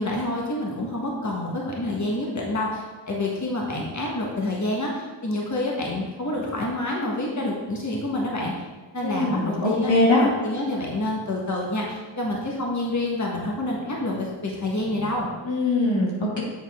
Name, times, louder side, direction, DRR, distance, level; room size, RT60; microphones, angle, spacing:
voice 1, 0.0-8.5 8.9-9.9 10.2-15.3, left 1 dB, 40° left, -3 dB, 1.5 m, -28 dB
voice 2, 9.0-10.2 15.4-16.4, left 2 dB, 85° left, -4 dB, 2.0 m, -22 dB
7.5 x 7.0 x 3.6 m, 1.2 s
wide cardioid pair, 65°, 44 cm